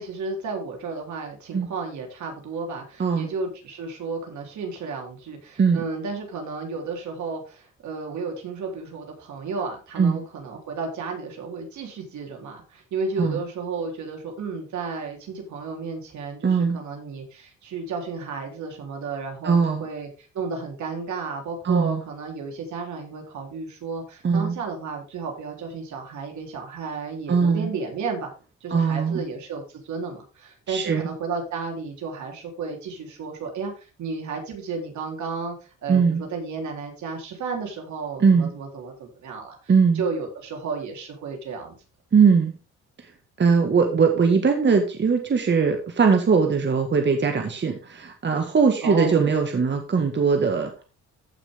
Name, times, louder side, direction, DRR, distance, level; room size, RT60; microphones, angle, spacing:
voice 1, 0.0-20.1 20.3-28.3 28.6-41.8 43.8-44.0 48.8-49.3, right 4 dB, 70° right, 1 dB, 3.8 m, -33 dB
voice 2, 16.4-16.8 19.4-19.9 21.6-22.0 24.2-24.6 27.3-27.7 28.7-29.2 30.7-31.1 35.9-36.2 38.2-38.5 39.7-40.0 42.1-42.5 43.4-50.7, right 5 dB, 35° right, 4 dB, 1.7 m, -20 dB
15.0 x 6.0 x 3.7 m, 0.34 s
cardioid pair, 90°, 30 cm